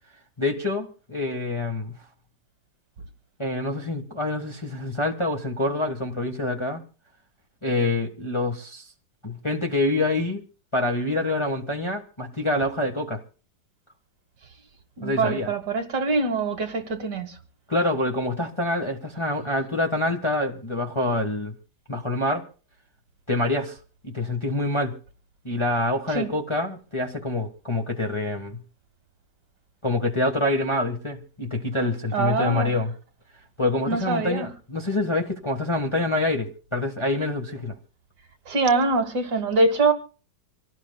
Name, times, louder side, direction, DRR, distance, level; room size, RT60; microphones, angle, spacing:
voice 1, 0.4-1.9 3.4-6.8 7.6-8.8 9.2-10.4 10.7-13.2 15.0-15.5 17.7-21.5 21.9-22.4 23.3-23.8 24.0-25.0 25.4-28.6 29.8-32.9 33.6-37.7, left 2 dB, 15° left, 1.4 m, -26 dB
voice 2, 15.0-17.4 26.1-26.3 32.1-32.7 33.9-34.5 38.5-39.9, right 3 dB, 60° right, 2.3 m, -24 dB
25.5 x 18.0 x 2.3 m
omnidirectional pair, 2.1 m